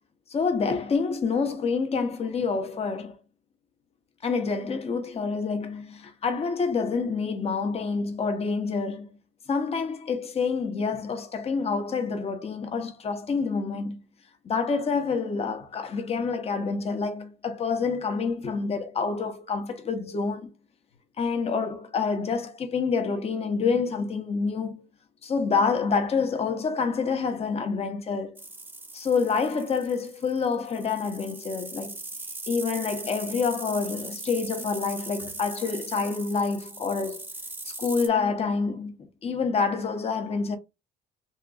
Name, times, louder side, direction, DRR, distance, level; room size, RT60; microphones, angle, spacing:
voice 1, 0.3-3.2 4.2-9.2 9.5-14.0 14.4-20.5 21.2-24.8 25.2-28.4 28.9-32.0 32.5-37.2 37.6-38.9 39.2-40.6, left 5 dB, 35° left, 1.1 m, -27 dB
sound 1, 28.4-38.1, right 2 dB, 10° right, 1.0 m, -40 dB
4.3 x 3.0 x 2.5 m
cardioid pair, 110°, 17 cm